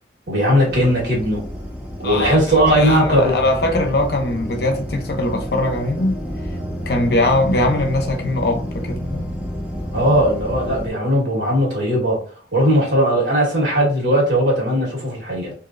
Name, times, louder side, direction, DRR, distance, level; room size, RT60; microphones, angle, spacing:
voice 1, 0.3-1.4 2.0-3.4 9.9-12.2 12.5-15.5, equal, 70° right, 1.3 m, -18 dB
sound 1, 0.7-10.9, equal, 5° right, 0.5 m, -30 dB
voice 2, 2.0-2.4 2.7-6.2 6.9-9.3, left 2 dB, 55° left, 0.6 m, -21 dB
3.1 x 2.6 x 2.5 m
head